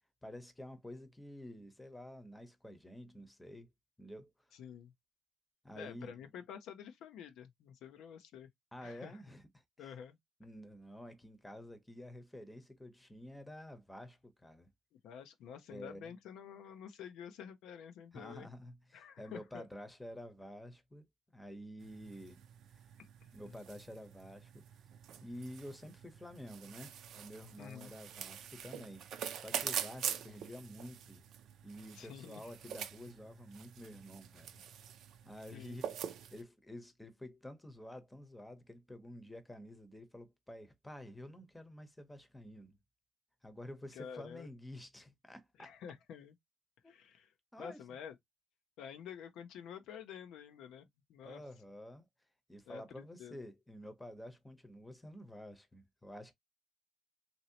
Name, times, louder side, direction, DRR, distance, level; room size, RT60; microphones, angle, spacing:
voice 1, 0.2-3.7 4.0-4.3 5.6-6.2 8.7-10.0 10.4-14.7 15.7-16.1 18.1-21.0 21.3-22.4 22.7-22.8 23.3-24.6 25.2-29.1 29.4-31.2 31.6-34.6 35.2-42.8 43.4-45.7 46.8-47.0 47.5-48.0 51.2-52.1 52.5-56.3, left 1 dB, 10° left, 0.8 m, -50 dB
voice 2, 4.5-4.9 5.8-8.5 8.8-9.2 9.8-10.2 15.0-18.5 18.9-19.7 23.0-23.5 27.6-27.9 31.9-32.4 35.5-35.8 43.9-44.5 45.6-46.3 46.9-47.3 47.6-48.2 48.8-51.4 52.7-53.4, left 8 dB, 85° left, 0.6 m, -49 dB
sound 1, 21.8-36.4, right 9 dB, 80° right, 0.5 m, -45 dB
3.0 x 2.7 x 2.7 m
cardioid pair, 90°, 0 cm